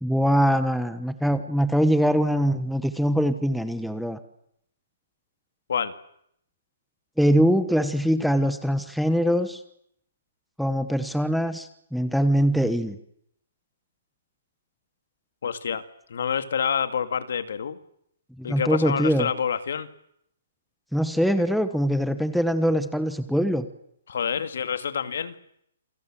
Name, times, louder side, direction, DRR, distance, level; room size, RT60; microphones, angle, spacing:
voice 1, 0.0-4.2 7.2-9.6 10.6-13.0 18.4-19.3 20.9-23.6, equal, ahead, 10 dB, 1.1 m, -23 dB
voice 2, 15.4-15.8 16.1-17.8 18.4-19.9 24.1-25.3, left 7 dB, 65° left, 11 dB, 2.2 m, -27 dB
28.0 x 23.0 x 7.5 m, 0.72 s
hypercardioid pair, 170°, 0 cm